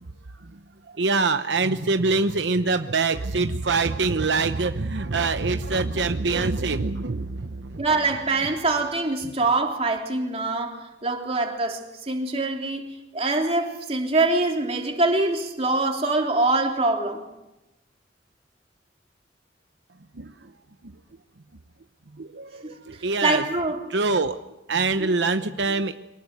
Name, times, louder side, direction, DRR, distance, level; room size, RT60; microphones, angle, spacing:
voice 1, 1.0-7.9 20.2-20.3 22.2-23.4 23.9-24.4 24.7-25.9, right 3 dB, 80° right, 0.9 m, -24 dB
voice 2, 7.8-17.2 22.6-22.7 23.2-23.8, right 2 dB, 35° right, 3.3 m, -24 dB
24.5 x 19.0 x 8.1 m
head